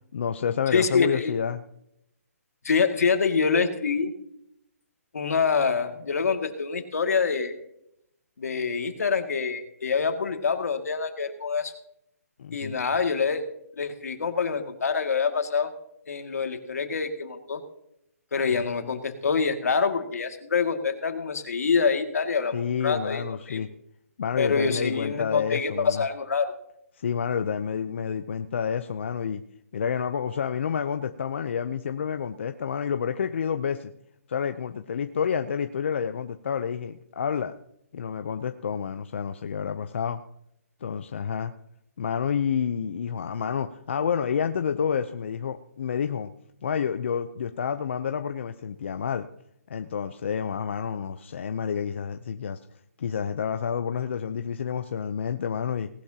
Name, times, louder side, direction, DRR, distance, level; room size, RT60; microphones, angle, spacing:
voice 1, 0.1-1.6 12.4-12.8 22.5-23.7 24.2-26.0 27.0-29.4 29.7-33.9 34.3-37.5 37.9-40.2 40.8-41.5 42.0-46.3 46.6-49.3 49.7-52.6 53.0-55.9, left 7 dB, 50° left, 8 dB, 0.6 m, -29 dB
voice 2, 0.7-1.3 2.6-4.1 5.1-7.6 8.4-11.7 12.5-13.5 13.8-15.7 16.1-17.6 18.3-23.6 24.4-26.5, left 5 dB, 75° left, 6 dB, 2.2 m, -26 dB
19.0 x 11.5 x 2.9 m, 0.75 s
hypercardioid pair, 170°, 8 cm